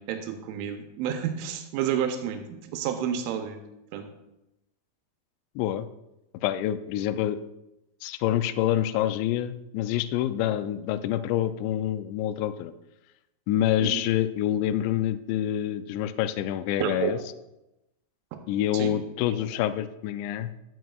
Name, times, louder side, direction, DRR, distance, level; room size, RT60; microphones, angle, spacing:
voice 1, 0.0-3.6 3.9-4.1 13.8-14.0 16.8-17.1 18.7-18.9 19.3-19.4, right 9 dB, 90° right, 5 dB, 3.2 m, -30 dB
voice 2, 5.6-5.9 6.4-7.4 8.0-12.7 13.5-17.2 18.5-20.5, left 12 dB, 85° left, 12 dB, 2.6 m, -27 dB
12.0 x 9.1 x 2.4 m, 0.91 s
omnidirectional pair, 5.4 m